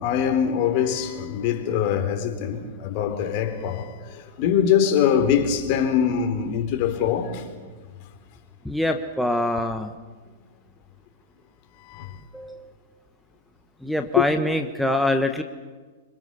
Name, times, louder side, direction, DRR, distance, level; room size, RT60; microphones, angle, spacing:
voice 1, 0.0-7.5 11.8-12.2, left 8 dB, 50° left, 4.0 m, -23 dB
voice 2, 8.6-9.9 12.3-12.7 13.8-15.4, left 1 dB, ahead, 1.3 m, -24 dB
25.5 x 23.5 x 7.0 m
hypercardioid pair, 120°, 0 cm